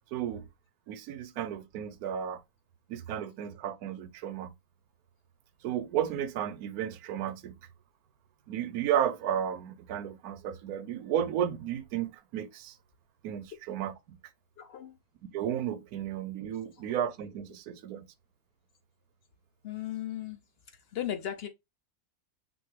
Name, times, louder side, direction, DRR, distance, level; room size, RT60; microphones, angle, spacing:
voice 1, 0.1-0.4 0.9-2.4 2.9-4.5 5.6-7.5 8.5-12.7 13.2-14.2 15.3-18.0, right 10 dB, 90° right, 1.1 m, -33 dB
voice 2, 14.6-15.0 16.7-16.9 19.6-20.4 20.7-21.5, left 11 dB, 70° left, 0.5 m, -37 dB
6.2 x 2.6 x 3.1 m
omnidirectional pair, 1.6 m